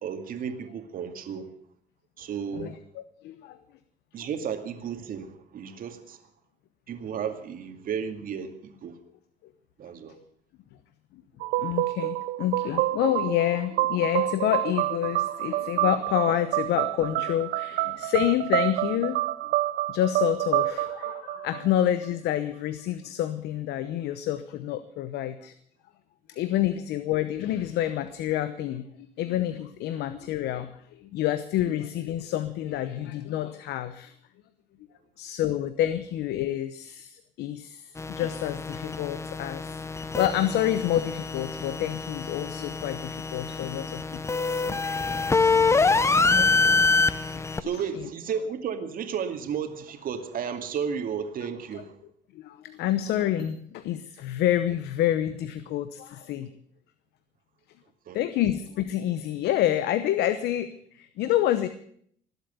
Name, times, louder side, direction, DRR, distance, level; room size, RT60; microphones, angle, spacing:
voice 1, 0.0-1.6 2.2-2.8 4.1-6.3 6.9-9.0 9.8-10.2 46.3-52.0 58.1-58.2, right 7 dB, 55° right, 7 dB, 2.3 m, -34 dB
voice 2, 3.2-3.6 11.1-11.2 11.6-19.2 19.9-25.5 26.3-34.1 35.2-44.2 44.5-44.8 47.3-47.7 52.3-56.5 58.1-61.7, left 12 dB, 80° left, 12 dB, 1.0 m, -28 dB
sound 1, 11.4-22.1, right 17 dB, 85° right, 0.6 m, -28 dB
sound 2, 38.0-47.6, left 4 dB, 15° left, 0.7 m, -26 dB
20.0 x 8.2 x 8.2 m, 0.63 s
cardioid pair, 110°, 17 cm